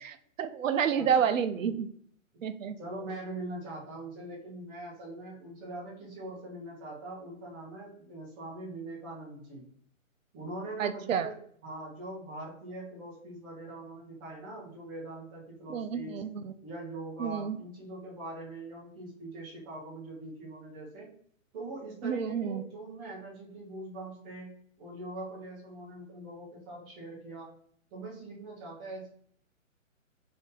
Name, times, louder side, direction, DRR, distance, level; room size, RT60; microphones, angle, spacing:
voice 1, 0.4-1.9 2.4-2.8 10.8-11.3 15.7-16.5 17.2-17.6 22.0-22.6, right 7 dB, 70° right, 10 dB, 0.5 m, -29 dB
voice 2, 1.0-1.7 2.8-9.7 10.3-11.4 11.6-16.2 16.6-21.1 21.5-24.5 24.8-27.5 27.9-29.1, right 2 dB, 10° right, -6 dB, 0.5 m, -42 dB
2.7 x 2.6 x 3.6 m, 0.62 s
hypercardioid pair, 140°, 41 cm